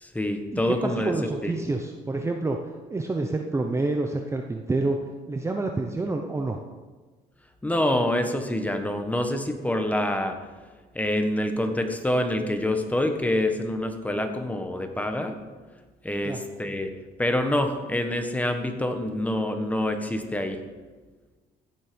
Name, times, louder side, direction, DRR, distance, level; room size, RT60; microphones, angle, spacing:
voice 1, 0.0-1.1 1.4-1.5 7.6-10.4 10.9-15.3 16.0-16.9 17.2-20.6, left 1 dB, 10° left, 5 dB, 1.4 m, -26 dB
voice 2, 0.5-2.6 2.9-5.0 5.3-6.6 16.2-16.4, right 2 dB, 15° right, 3 dB, 0.8 m, -28 dB
15.5 x 7.4 x 5.3 m, 1.3 s
cardioid pair, 110°, 17 cm